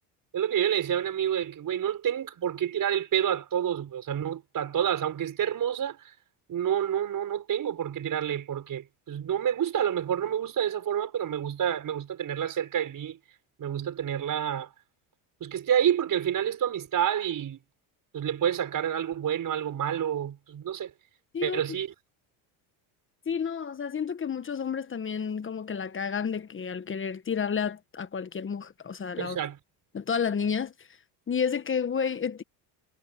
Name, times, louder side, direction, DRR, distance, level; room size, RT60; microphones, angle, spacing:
voice 1, 0.3-6.1 6.5-13.2 13.6-14.7 15.4-17.6 18.1-20.9 21.4-21.9 29.2-29.6, right 9 dB, 45° right, 5.2 m, -28 dB
voice 2, 23.3-29.4 29.9-30.7 31.3-32.4, left 6 dB, 25° left, 1.3 m, -30 dB
supercardioid pair, 100°, 46 cm